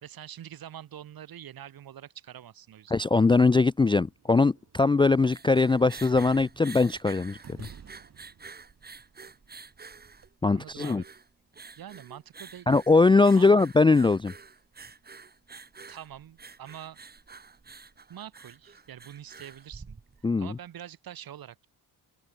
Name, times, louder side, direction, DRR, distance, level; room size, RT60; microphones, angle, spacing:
voice 1, 0.0-3.0 10.5-11.0 11.7-12.7 13.4-13.6 15.9-17.0 18.1-21.7, right 10 dB, 60° right, 4.3 m, -45 dB
voice 2, 2.9-7.7 10.4-11.0 12.7-14.3 20.2-20.5, left 3 dB, 15° left, 0.3 m, -21 dB
sound 1, 3.6-10.3, right 7 dB, 40° right, 6.1 m, -55 dB
sound 2, 5.1-20.4, right 4 dB, 25° right, 6.9 m, -48 dB
open air
wide cardioid pair, 175°, 39 cm